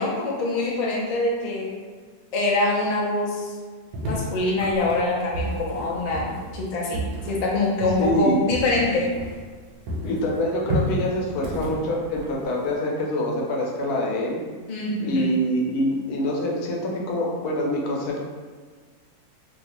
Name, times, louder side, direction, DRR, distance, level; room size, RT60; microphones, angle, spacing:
voice 1, 0.0-1.8 2.3-3.5 4.0-9.1 14.7-15.3, left 2 dB, 60° left, -4 dB, 0.4 m, -24 dB
sound 1, 3.9-9.6 9.9-12.8, right 1 dB, 85° right, 1.2 m, -31 dB
voice 2, 8.0-8.4 10.0-14.4 15.0-18.2, equal, 80° left, -1 dB, 1.2 m, -25 dB
3.0 x 2.7 x 2.9 m, 1.5 s
omnidirectional pair, 1.6 m